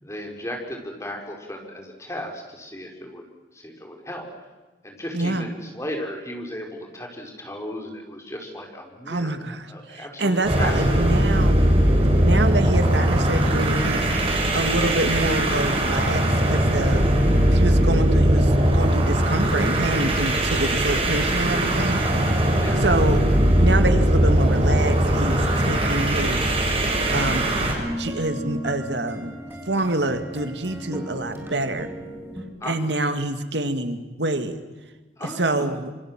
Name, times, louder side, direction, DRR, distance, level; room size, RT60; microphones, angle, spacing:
voice 1, 0.0-3.2 3.5-4.2 4.8-9.4 9.7-11.0 20.8-21.0 22.6-22.8 32.6-32.7 35.2-35.7, left 1 dB, 15° left, 1 dB, 5.2 m, -35 dB
voice 2, 5.1-5.5 9.1-11.8 12.2-14.1 14.5-17.1 17.5-22.1 22.8-23.2 23.6-26.5 27.1-27.4 28.0-29.4 29.7-31.9 32.7-34.6 35.2-35.9, right 2 dB, 75° right, 8 dB, 2.1 m, -26 dB
sound 1, 10.4-27.8, right 1 dB, 30° right, 6.4 m, -20 dB
sound 2, 26.6-32.4, equal, 10° right, 4.0 m, -35 dB
27.5 x 25.0 x 7.6 m, 1.2 s
head